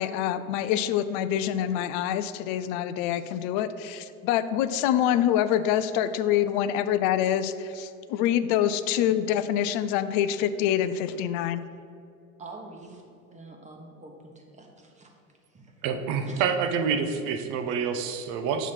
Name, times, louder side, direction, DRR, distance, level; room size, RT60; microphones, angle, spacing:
voice 1, 0.0-11.6, left 10 dB, 50° left, 13 dB, 0.4 m, -26 dB
voice 2, 12.4-15.1 15.5-15.8 16.3-16.4, right 2 dB, 15° right, 1 dB, 1.0 m, -46 dB
voice 3, 15.8-18.7, right 6 dB, 50° right, 7 dB, 0.7 m, -27 dB
6.9 x 3.0 x 5.7 m, 2.5 s
hypercardioid pair, 100°, 42 cm